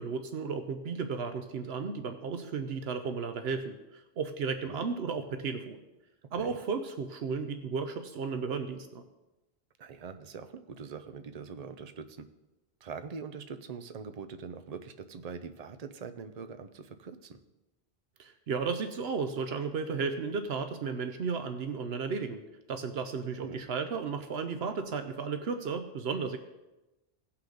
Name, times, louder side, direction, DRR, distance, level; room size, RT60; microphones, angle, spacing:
voice 1, 0.0-5.8 6.3-9.0 18.2-22.4 22.7-26.4, right 5 dB, 75° right, 7 dB, 0.9 m, -34 dB
voice 2, 9.8-12.3 12.8-17.4 23.4-23.6, right 5 dB, 45° right, 9 dB, 0.7 m, -43 dB
17.0 x 5.8 x 3.9 m, 1.0 s
omnidirectional pair, 1.0 m